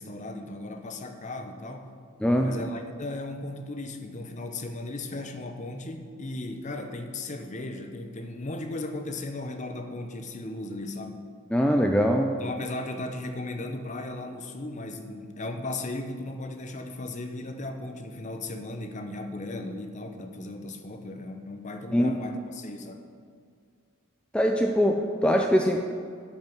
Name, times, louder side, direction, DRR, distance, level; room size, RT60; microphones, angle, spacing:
voice 1, 0.0-1.9 2.4-11.3 12.4-23.0, left 2 dB, 35° left, 6 dB, 0.8 m, -36 dB
voice 2, 11.5-12.4 21.9-22.1 24.3-25.8, equal, 5° left, 2 dB, 0.4 m, -22 dB
12.0 x 5.4 x 6.1 m, 2.2 s
head